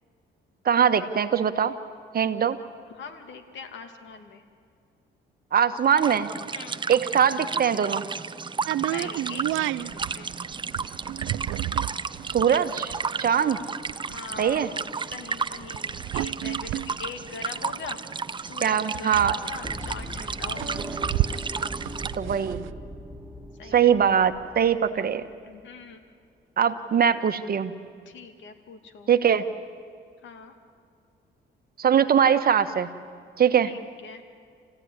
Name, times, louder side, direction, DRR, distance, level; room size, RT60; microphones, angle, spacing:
voice 1, 0.6-1.7 2.1-2.6 5.5-6.3 6.9-8.1 12.3-13.6 14.4-14.7 18.6-19.3 22.1-22.7 23.7-25.3 26.6-27.7 29.1-29.4 31.8-32.9 33.4-33.7, right 8 dB, 50° right, 9 dB, 1.4 m, -22 dB
voice 2, 2.9-4.4 6.5-6.8 8.9-10.3 14.1-18.0 18.4-20.9 23.6-24.0 25.4-26.0 28.1-29.1 30.2-30.5 33.6-34.2, left 5 dB, 70° left, 6 dB, 2.5 m, -42 dB
sound 1, 5.9-22.1, right 5 dB, 25° right, 0.6 m, -33 dB
sound 2, 8.7-18.2 18.5-18.6 18.8-22.7, right 15 dB, 85° right, 0.5 m, -32 dB
sound 3, 19.6-25.6, equal, 10° right, 1.4 m, -39 dB
28.0 x 15.5 x 9.7 m, 2.2 s
cardioid pair, 90°, 20 cm